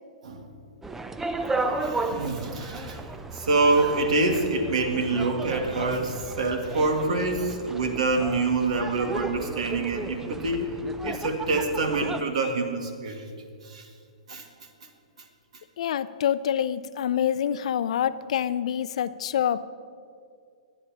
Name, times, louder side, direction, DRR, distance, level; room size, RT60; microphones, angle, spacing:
sound 1, 0.8-12.2, right 2 dB, 10° right, 0.5 m, -34 dB
voice 1, 1.3-3.1 3.3-13.3 13.6-13.9 14.3-14.4, right 3 dB, 75° right, 4 dB, 2.0 m, -26 dB
voice 2, 15.8-19.6, left 9 dB, 65° left, 15 dB, 0.5 m, -26 dB
24.5 x 10.0 x 2.9 m, 2.3 s
hypercardioid pair, 140°, 4 cm